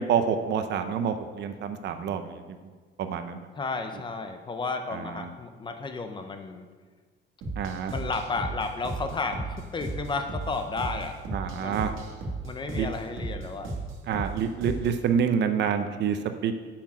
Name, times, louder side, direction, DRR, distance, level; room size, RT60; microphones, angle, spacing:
voice 1, 0.0-2.4 3.0-3.4 4.9-5.3 7.6-7.9 11.3-11.9 12.8-12.9 14.1-16.5, right 7 dB, 60° right, 9 dB, 0.7 m, -27 dB
voice 2, 3.6-6.7 7.9-11.2 11.6-12.0 12.4-13.7, left 4 dB, 25° left, 7 dB, 0.6 m, -33 dB
sound 1, 7.4-15.0, right 2 dB, 85° right, 1.7 m, -35 dB
8.6 x 5.9 x 6.1 m, 1.5 s
cardioid pair, 180°, 20 cm